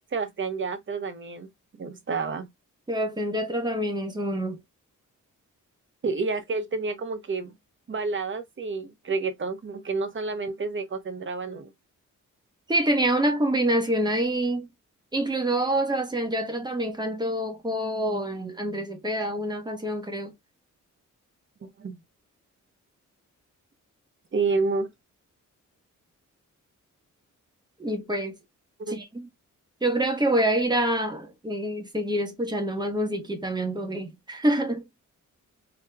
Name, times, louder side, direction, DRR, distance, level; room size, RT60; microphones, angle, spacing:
voice 1, 0.1-1.5 1.8-2.5 6.0-7.5 7.9-11.7 21.6-22.0 24.3-24.9 28.9-29.0, right 4 dB, 40° right, 0.9 m, -29 dB
voice 2, 2.9-4.6 12.7-14.7 15.1-20.3 27.8-28.3 28.9-29.3 29.8-34.8, right 1 dB, 15° right, 1.0 m, -26 dB
4.6 x 2.8 x 2.3 m
wide cardioid pair, 165°, 31 cm